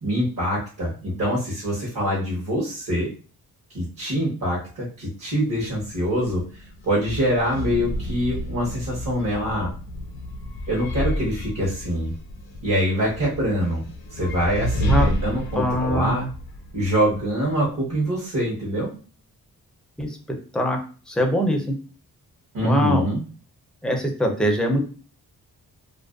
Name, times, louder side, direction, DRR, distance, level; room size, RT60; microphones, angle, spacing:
voice 1, 0.0-3.1 3.7-9.7 10.7-12.1 12.6-13.8 14.1-16.3 16.7-18.9 22.5-23.2, equal, 55° right, -5 dB, 0.9 m, -24 dB
sound 1, 5.5-17.6, left 1 dB, 80° left, 0.6 m, -31 dB
voice 2, 15.6-16.3 20.0-20.1 20.5-20.8 21.1-21.6 22.6-23.0 23.8-24.8, equal, ahead, 2 dB, 0.4 m, -22 dB
2.4 x 2.1 x 2.3 m, 0.38 s
cardioid pair, 90°, 37 cm